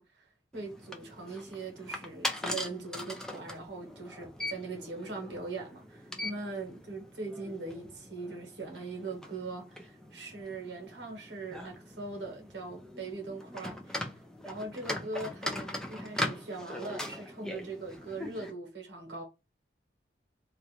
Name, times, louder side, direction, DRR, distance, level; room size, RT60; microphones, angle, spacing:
voice 1, 0.0-14.2 14.4-19.2, right 3 dB, 85° right, 0.9 m, -41 dB
sound 1, 0.5-18.5, left 1 dB, 5° left, 0.3 m, -41 dB
2.4 x 2.2 x 3.0 m
head